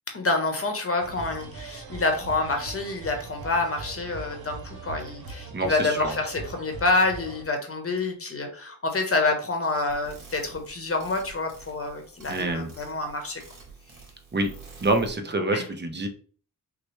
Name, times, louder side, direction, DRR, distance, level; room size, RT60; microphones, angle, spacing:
voice 1, 0.1-13.4 15.5-15.7, left 3 dB, 40° left, 4 dB, 1.1 m, -27 dB
sound 1, 1.0-7.4, right 3 dB, 85° right, 1.0 m, -40 dB
voice 2, 5.5-6.1 12.3-12.7 14.3-14.5 14.8-16.1, right 2 dB, 30° right, 6 dB, 0.7 m, -26 dB
sound 2, 9.9-15.1, right 5 dB, 65° right, 2.1 m, -48 dB
6.2 x 2.2 x 3.1 m, 0.43 s
wide cardioid pair, 115°, 35 cm